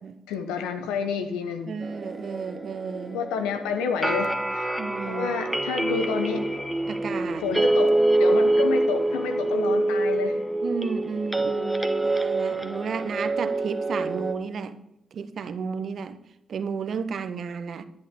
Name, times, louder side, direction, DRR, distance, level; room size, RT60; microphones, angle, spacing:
voice 1, 0.3-1.7 3.1-4.7 5.1-6.5 7.4-10.4, left 5 dB, 85° left, 7 dB, 1.0 m, -29 dB
voice 2, 1.7-3.2 4.8-5.3 6.9-7.4 10.6-14.8 15.1-16.2 16.5-17.8, right 5 dB, 60° right, 11 dB, 0.9 m, -33 dB
sound 1, 1.8-14.3, right 2 dB, ahead, 1.3 m, -25 dB
11.0 x 10.5 x 3.7 m, 0.83 s
hypercardioid pair, 45°, 0 cm